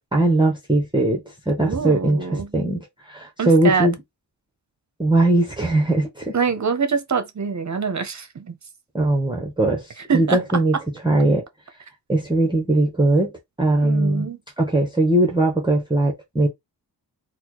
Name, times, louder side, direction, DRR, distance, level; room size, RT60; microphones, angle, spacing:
voice 1, 0.1-4.0 5.0-6.4 8.9-10.8 11.0-11.5 12.1-13.3 13.6-14.3 14.6-16.5, right 2 dB, 10° right, 0.8 m, -20 dB
voice 2, 1.6-2.5 3.4-3.9 6.3-8.6 10.1-10.4 13.8-14.4, right 6 dB, 45° right, 0.7 m, -24 dB
4.1 x 2.2 x 2.9 m
wide cardioid pair, 100°, 42 cm